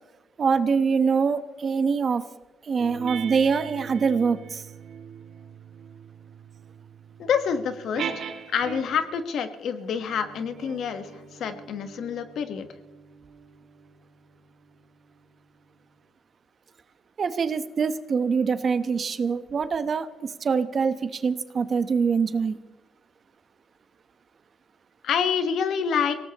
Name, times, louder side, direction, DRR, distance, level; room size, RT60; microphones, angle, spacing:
voice 1, 0.4-2.2 2.6-4.6 17.2-22.6, right 5 dB, 45° right, 11 dB, 1.0 m, -24 dB
sound 1, 2.8-9.2 9.9-14.9, right 7 dB, 70° right, 2.0 m, -41 dB
voice 2, 7.2-11.1 11.4-12.7 25.0-26.1, left 7 dB, 70° left, 9 dB, 1.3 m, -27 dB
26.0 x 18.0 x 3.0 m, 1.0 s
cardioid pair, 90°, 0 cm